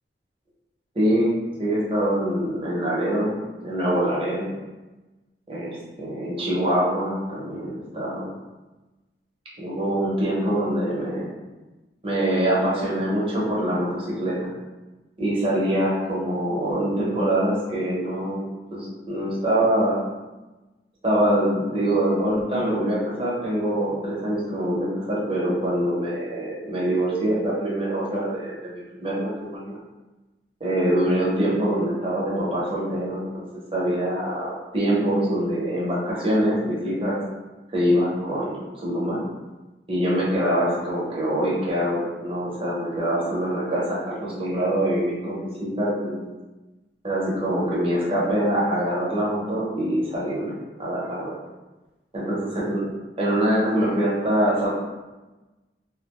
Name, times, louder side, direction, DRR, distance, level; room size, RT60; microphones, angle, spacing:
voice 1, 0.9-1.3 1.6-4.5 5.5-8.3 9.6-11.3 12.0-14.5 15.2-20.0 21.0-29.8 30.6-33.2 33.7-37.2 37.7-39.2 39.9-46.2 47.0-51.3 52.1-52.8 53.2-54.7, right 1 dB, 30° right, -6 dB, 0.7 m, -24 dB
2.4 x 2.1 x 3.0 m, 1.1 s
head